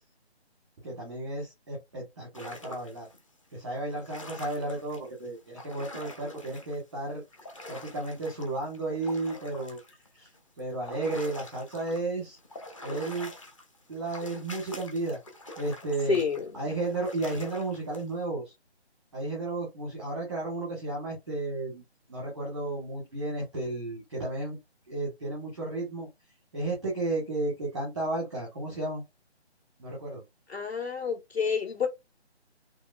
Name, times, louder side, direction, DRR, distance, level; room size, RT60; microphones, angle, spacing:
voice 1, 0.8-3.1 3.5-7.2 7.7-10.3 10.6-12.4 12.8-13.3 13.9-15.2 15.6-16.2 16.5-18.5 19.1-21.8 22.1-24.6 24.9-26.1 26.5-29.0 29.8-30.2, right 2 dB, ahead, 0.9 m, -33 dB
sound 1, 2.3-3.2 3.8-6.8 7.1-12.0 12.4-18.1, left 1 dB, 30° left, 1.0 m, -45 dB
voice 2, 16.1-16.6 30.5-31.9, left 7 dB, 65° left, 2.7 m, -29 dB
4.6 x 3.1 x 2.4 m
figure-of-eight pair, 165°, 33 cm